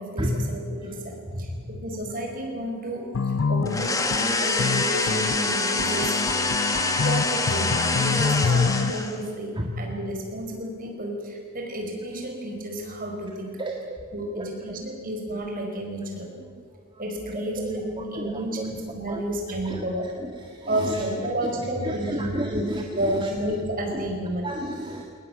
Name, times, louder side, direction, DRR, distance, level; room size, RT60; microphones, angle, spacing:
voice 1, 0.0-6.2 7.0-13.5 14.1-16.3 17.0-20.1 20.7-22.7 22.9-24.5, right 1 dB, 40° right, 2 dB, 5.1 m, -31 dB
voice 2, 1.3-1.7 9.5-9.7 13.6-14.0 14.3-14.8 17.3-17.5 18.0-18.7 19.1-19.2 19.6-19.8 20.2-21.0 21.8-23.3 23.9-24.0 24.4-25.0, equal, 20° right, 1 dB, 1.7 m, -32 dB
sound 1, 3.1-8.9, left 5 dB, 65° left, 0.5 m, -26 dB
sound 2, 3.7-9.3, left 3 dB, 15° left, 1.6 m, -25 dB
22.5 x 19.5 x 9.0 m, 2.2 s
head